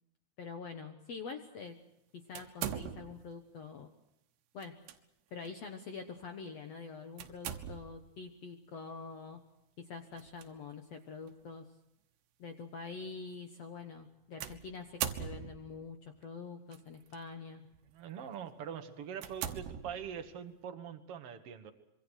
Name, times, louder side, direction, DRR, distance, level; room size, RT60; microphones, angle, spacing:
voice 1, 0.4-1.8 2.1-3.9 4.5-4.7 5.3-9.4 9.8-11.7 12.4-17.6, left 5 dB, 70° left, 5 dB, 1.5 m, -45 dB
sound 1, 2.3-3.3 4.6-5.0 5.4-5.6 7.2-8.1 10.1-10.5 11.3-11.4 14.4-15.8 16.7-17.2 17.7-17.9 18.5-18.6 19.2-20.4, right 10 dB, 90° right, 3.3 m, -41 dB
voice 2, 17.9-21.7, right 8 dB, 65° right, 7 dB, 1.5 m, -43 dB
25.5 x 24.0 x 6.4 m, 0.86 s
omnidirectional pair, 4.7 m